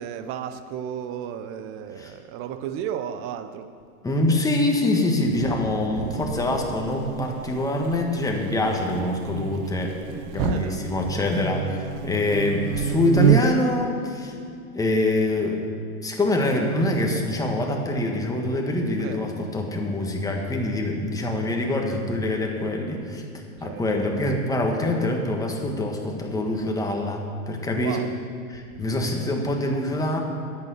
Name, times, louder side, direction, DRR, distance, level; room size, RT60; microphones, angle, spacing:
voice 1, 0.0-3.7 5.4-6.6 8.9-9.1 10.3-10.8 19.0-19.2 23.6-23.8 27.8-28.1, right 9 dB, 30° right, 10 dB, 0.8 m, -33 dB
voice 2, 4.0-14.4 14.7-15.7 16.0-23.2 23.6-28.0 28.5-30.2, left 1 dB, 10° left, 1 dB, 1.5 m, -25 dB
Buzz, 5.9-13.7, right 13 dB, 75° right, 0.6 m, -29 dB
10.5 x 8.7 x 8.2 m, 2.3 s
hypercardioid pair, 120°, 43 cm